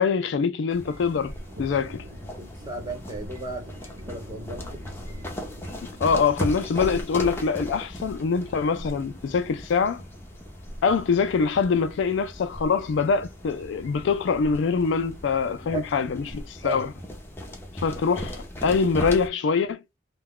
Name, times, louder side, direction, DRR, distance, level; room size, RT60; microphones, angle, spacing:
voice 1, 0.0-2.0 6.0-10.0 10.8-16.9 17.8-19.8, left 5 dB, 85° left, 0.4 m, -24 dB
sound 1, 0.7-19.3, equal, 15° left, 0.6 m, -38 dB
Thunder, 0.8-16.8, equal, 75° right, 1.0 m, -47 dB
voice 2, 2.4-4.8 15.6-15.9 16.6-16.8, right 3 dB, 25° right, 0.9 m, -35 dB
2.2 x 2.2 x 3.6 m
head